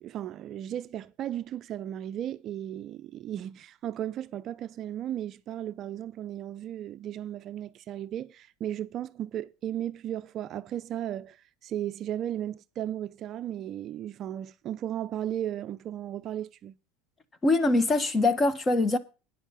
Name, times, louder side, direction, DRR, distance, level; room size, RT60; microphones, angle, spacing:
voice 1, 0.0-16.7, right 11 dB, 45° right, 0.5 m, -35 dB
voice 2, 17.4-19.0, left 2 dB, 25° left, 1.3 m, -23 dB
9.9 x 7.3 x 6.8 m
supercardioid pair, 105°, 0 cm